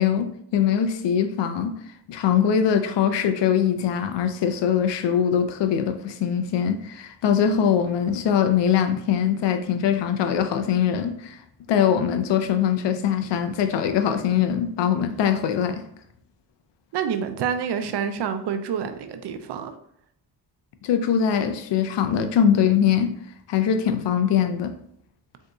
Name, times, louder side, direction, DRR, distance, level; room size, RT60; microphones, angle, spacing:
voice 1, 0.0-1.8 2.1-11.4 11.7-15.8 20.8-23.1 23.5-24.7, left 8 dB, 75° left, 0.5 m, -22 dB
voice 2, 16.9-19.7, right 7 dB, 70° right, 0.5 m, -27 dB
3.8 x 2.7 x 2.3 m
cardioid pair, 90°, 43 cm